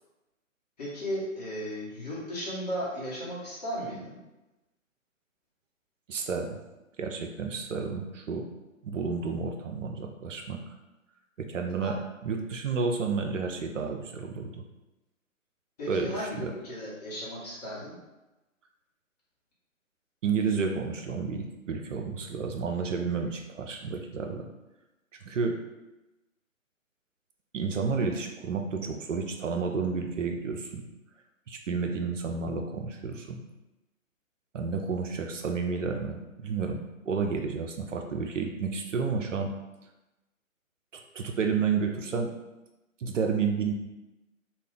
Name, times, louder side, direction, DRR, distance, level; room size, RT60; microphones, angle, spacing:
voice 1, 0.8-4.2 11.8-11.9 15.8-17.9, equal, 30° left, -7 dB, 0.9 m, -35 dB
voice 2, 6.1-6.6 7.0-8.5 8.8-10.6 11.4-12.0 12.2-14.6 15.9-16.5 20.2-24.5 25.3-25.6 27.5-30.8 31.5-33.4 34.5-36.8 37.1-39.5 41.1-42.3 43.0-43.7, right 5 dB, 65° right, 3 dB, 0.5 m, -31 dB
2.3 x 2.1 x 3.6 m, 1.0 s
figure-of-eight pair, 140°, 41 cm